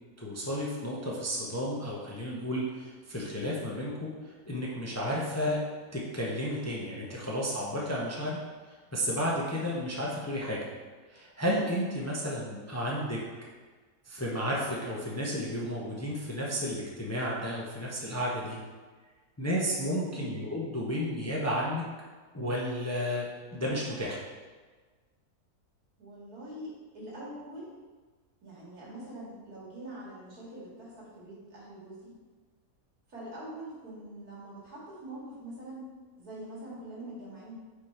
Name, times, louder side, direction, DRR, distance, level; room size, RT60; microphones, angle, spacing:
voice 1, 0.2-5.6 5.9-8.4 8.9-10.6 11.1-13.2 14.1-18.6 19.4-21.8 22.3-24.2, equal, 15° left, -4 dB, 0.6 m, -32 dB
voice 2, 26.0-27.7 28.4-32.2 33.1-35.9 36.2-37.6, right 1 dB, 85° right, -7 dB, 2.6 m, -44 dB
5.1 x 4.8 x 4.3 m, 1.4 s
omnidirectional pair, 1.5 m